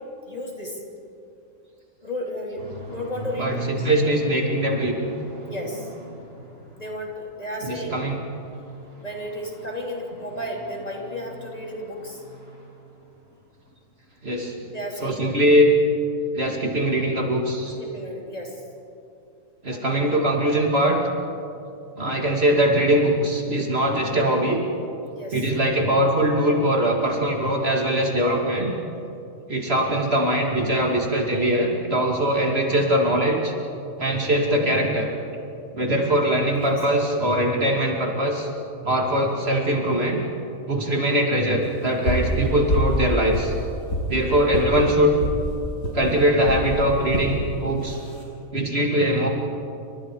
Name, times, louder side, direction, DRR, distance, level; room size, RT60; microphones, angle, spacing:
voice 1, 0.2-0.8 2.0-3.9 5.5-5.9 6.7-8.1 9.0-12.2 14.7-15.3 17.8-18.6 19.7-20.2 25.1-25.4 36.6-37.0 37.3-37.6, equal, 25° left, -1 dB, 3.3 m, -33 dB
sound 1, 2.6-7.1 7.5-12.7 13.0-13.3 13.7-13.8 14.1-14.2, equal, 80° right, 8.7 m, -37 dB
voice 2, 3.4-4.9 7.6-8.2 14.2-14.7 15.0-15.7 16.3-17.8 19.6-21.0 22.0-24.6 25.3-28.7 29.5-33.5 34.0-35.1 35.7-38.5 38.8-40.2 40.7-43.5 44.1-45.2 45.9-48.0 48.5-49.3, right 1 dB, 45° right, 0 dB, 2.8 m, -21 dB
sound 2, 42.0-42.3 42.7-43.0 43.3-44.1 44.5-44.7 45.2-45.4 45.8-46.0 46.4-46.6 47.1-47.3 47.9-48.2, left 1 dB, 80° left, 5.9 m, -25 dB
30.0 x 26.0 x 4.8 m, 2.6 s
omnidirectional pair, 1.5 m